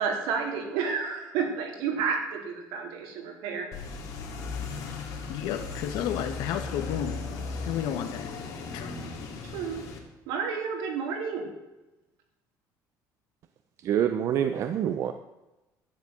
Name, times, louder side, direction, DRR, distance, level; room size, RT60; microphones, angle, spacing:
voice 1, 0.0-3.7 9.4-9.9 10.3-11.5, right 6 dB, 85° right, 1 dB, 3.8 m, -30 dB
sound 1, 3.7-10.0, left 4 dB, 50° left, 3.1 m, -37 dB
voice 2, 5.3-7.2 7.6-8.3 8.7-9.0, left 9 dB, 75° left, 7 dB, 1.8 m, -31 dB
voice 3, 13.8-15.1, right 9 dB, 45° right, 8 dB, 0.7 m, -26 dB
11.5 x 10.5 x 8.2 m, 1.0 s
cardioid pair, 165°, 7 cm